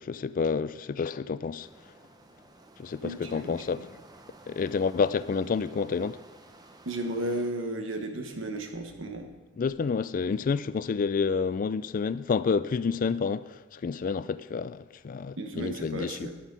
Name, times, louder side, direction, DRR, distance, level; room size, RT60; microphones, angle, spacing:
voice 1, 0.0-1.7 2.8-3.9 4.5-6.2 9.6-16.3, left 5 dB, 45° left, 0.3 m, -29 dB
sound 1, 1.6-7.5, right 2 dB, 20° right, 0.6 m, -53 dB
voice 2, 3.0-3.9 6.8-9.3 15.4-16.4, right 1 dB, 75° right, 1.2 m, -34 dB
10.0 x 7.3 x 5.3 m
head